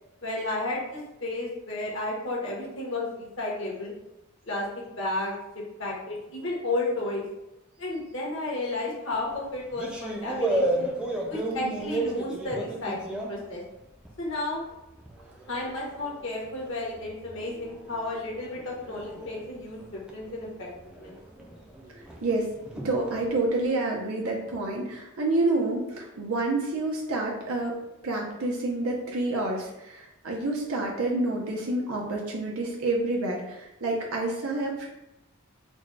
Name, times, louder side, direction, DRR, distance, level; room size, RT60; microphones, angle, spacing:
voice 1, 0.2-3.9 4.5-7.2 7.8-10.9 11.3-13.6 14.2-14.6 15.5-20.7 21.0-21.2, left 2 dB, 60° left, -3 dB, 1.4 m, -32 dB
sound 1, 9.1-14.3 14.7-23.6, right 1 dB, 5° right, 0.5 m, -34 dB
voice 2, 22.2-22.5 22.8-34.9, right 2 dB, 85° right, -1 dB, 0.7 m, -28 dB
4.1 x 2.3 x 4.6 m, 0.93 s
head